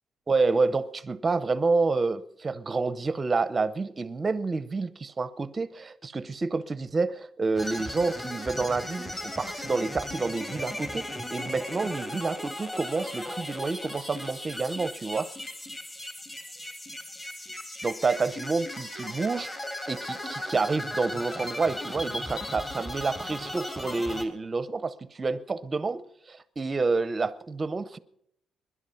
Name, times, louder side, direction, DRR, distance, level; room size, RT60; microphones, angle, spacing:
voice 1, 0.3-15.3 17.8-19.5 19.9-28.0, right 3 dB, 20° right, 0.7 m, -29 dB
sound 1, 7.6-24.2, left 1 dB, 20° left, 2.1 m, -37 dB
Wind instrument woodwind instrument, 8.9-13.1, left 5 dB, 65° left, 6.8 m, -66 dB
21.5 x 11.5 x 5.7 m
cardioid pair, 165°, 0 cm